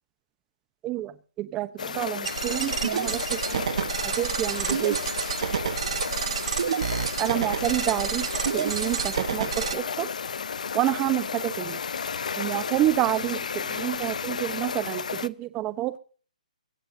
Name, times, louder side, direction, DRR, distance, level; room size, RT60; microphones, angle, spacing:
voice 1, 0.8-3.6 4.0-5.0 7.2-8.3 8.5-10.1 10.7-11.8 12.4-16.0, right 15 dB, 15° right, 13 dB, 1.0 m, -28 dB
sound 1, 1.8-15.3, left 6 dB, 65° left, 0.7 m, -33 dB
sound 2, 2.3-9.7, right 7 dB, 50° right, 1.3 m, -29 dB
22.0 x 16.0 x 2.8 m, 0.40 s
hypercardioid pair, 170°, 4 cm